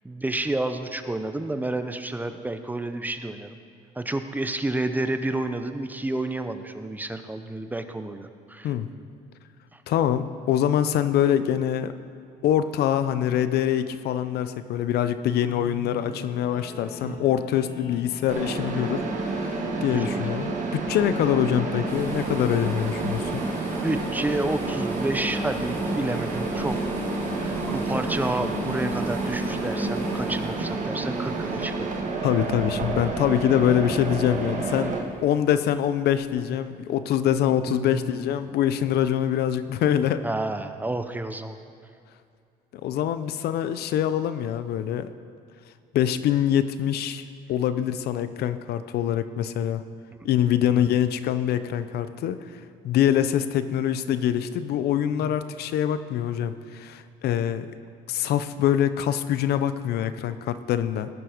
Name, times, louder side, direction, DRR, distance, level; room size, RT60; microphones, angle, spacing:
voice 1, 0.0-3.6 4.0-8.7 9.7-9.8 15.5-16.3 17.0-17.2 19.5-20.3 23.8-26.8 27.4-32.0 36.4-36.5 37.7-38.1 39.9-41.6 50.7-50.9 55.2-55.3, right 2 dB, 10° right, 8 dB, 0.7 m, -30 dB
voice 2, 9.9-11.9 12.4-23.4 32.2-40.2 42.8-45.1 45.9-49.8 50.2-52.4 52.8-57.7 58.1-61.1, left 10 dB, 70° left, 12 dB, 0.7 m, -24 dB
Guitar, 16.0-21.9, left 5 dB, 50° left, 1.7 m, -44 dB
Mechanisms, 18.3-35.0, right 3 dB, 45° right, 1.8 m, -29 dB
sound 1, 21.9-32.0 32.7-33.0 33.5-33.7 34.4-34.9 35.2-35.3 36.2-36.3, left 2 dB, 10° left, 2.2 m, -36 dB
18.5 x 7.6 x 5.1 m, 2.4 s
cardioid pair, 110°, 17 cm